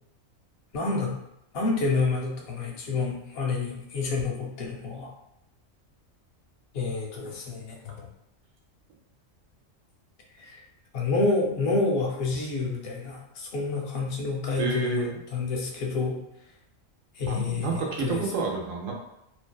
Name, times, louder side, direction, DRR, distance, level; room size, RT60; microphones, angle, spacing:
voice 1, 0.7-1.2 1.5-5.1 6.7-7.9 10.4-10.6 10.9-16.2 17.2-18.2, left 3 dB, 60° left, -1 dB, 0.7 m, -28 dB
voice 2, 14.6-15.2 17.3-18.9, right 3 dB, 80° right, 0 dB, 1.0 m, -29 dB
2.5 x 2.2 x 2.2 m, 0.83 s
omnidirectional pair, 1.4 m